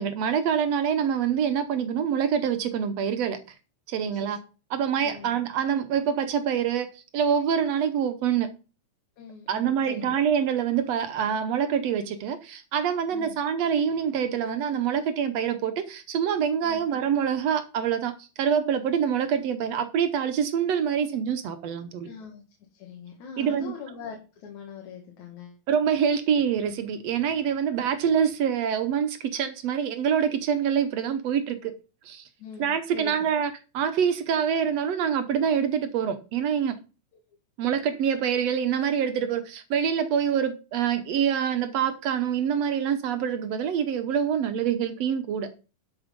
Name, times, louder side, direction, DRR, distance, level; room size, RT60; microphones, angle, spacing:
voice 1, 0.0-3.4 3.9-4.4 4.7-8.5 9.5-22.1 23.4-23.7 25.7-31.7 32.1-32.2 32.6-36.8 37.6-45.5, right 8 dB, 65° right, 1.9 m, -26 dB
voice 2, 5.0-5.3 9.2-10.2 13.1-13.4 16.6-16.8 22.0-22.4 22.7-25.6 32.4-33.3, left 6 dB, 70° left, 3.0 m, -42 dB
12.0 x 5.5 x 5.2 m
omnidirectional pair, 3.5 m